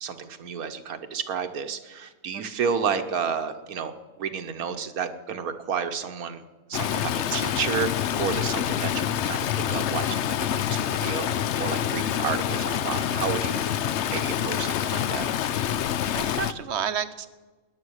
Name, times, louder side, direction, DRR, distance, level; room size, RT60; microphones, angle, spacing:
voice 1, 0.0-3.9 4.2-6.4 6.7-7.9 8.2-13.7 14.1-15.3, right 6 dB, 75° right, 8 dB, 1.3 m, -31 dB
voice 2, 2.3-2.7 16.1-17.3, right 8 dB, 55° right, 12 dB, 1.0 m, -31 dB
Stream, 6.7-16.5, left 10 dB, 60° left, 0.8 m, -27 dB
19.0 x 10.5 x 6.4 m, 1.3 s
omnidirectional pair, 1.6 m